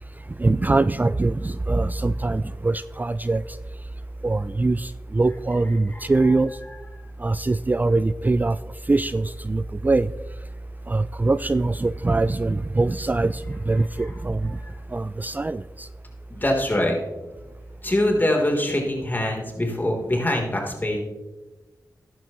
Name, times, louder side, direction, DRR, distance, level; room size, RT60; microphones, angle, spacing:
voice 1, 0.4-3.6 4.2-6.6 7.2-8.6 8.9-10.1 10.9-14.6 14.9-15.9, right 2 dB, 25° right, 15 dB, 0.3 m, -23 dB
voice 2, 16.3-17.0 17.8-21.0, left 1 dB, 25° left, 0 dB, 3.5 m, -23 dB
13.5 x 10.5 x 3.1 m, 1.1 s
cardioid pair, 45°, 7 cm